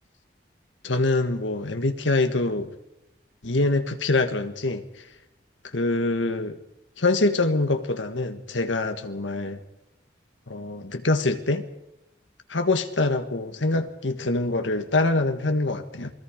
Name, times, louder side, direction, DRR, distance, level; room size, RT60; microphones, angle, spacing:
voice 1, 0.8-2.7 3.4-4.8 5.7-6.6 7.0-9.6 10.5-11.7 12.5-16.1, left 2 dB, 90° left, 7 dB, 1.6 m, -24 dB
28.5 x 20.5 x 5.1 m, 0.87 s
head